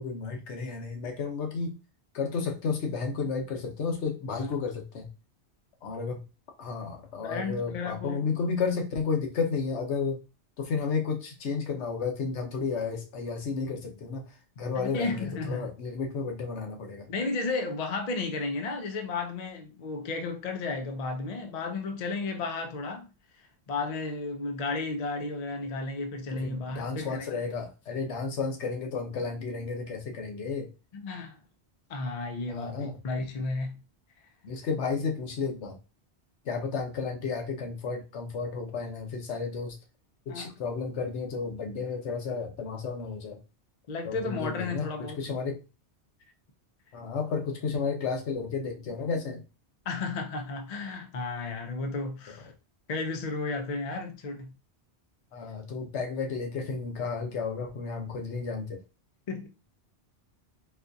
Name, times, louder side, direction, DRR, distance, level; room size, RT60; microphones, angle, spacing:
voice 1, 0.0-1.8 2.1-5.1 5.8-6.2 6.6-10.2 10.6-17.1 26.4-30.7 32.5-32.9 34.4-35.8 36.5-39.8 40.3-43.4 44.0-44.9 45.1-45.6 46.9-49.4 52.3-52.4 55.3-58.8, left 5 dB, 80° left, 1.1 m, -32 dB
voice 2, 7.2-8.3 14.7-15.7 17.1-23.1 23.7-27.4 30.9-31.4 31.9-32.8 33.0-33.8 40.3-40.5 43.9-45.2 49.9-52.5 52.9-54.5 59.3-59.5, left 3 dB, 50° left, 0.5 m, -33 dB
4.3 x 2.3 x 2.6 m
omnidirectional pair, 1.2 m